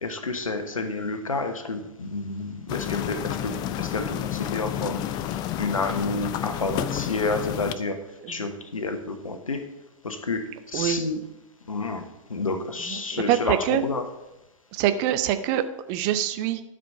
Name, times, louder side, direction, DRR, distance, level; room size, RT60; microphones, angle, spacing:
voice 1, 0.0-5.0 5.3-9.7 10.0-11.2 11.6-14.1, left 3 dB, 80° left, 8 dB, 1.1 m, -30 dB
sound 1, 2.7-7.7, left 11 dB, 25° left, 0.4 m, -30 dB
voice 2, 13.1-13.8 14.7-16.6, right 11 dB, 35° right, 11 dB, 0.7 m, -24 dB
12.0 x 5.1 x 5.6 m, 0.93 s
figure-of-eight pair, 105°, 17 cm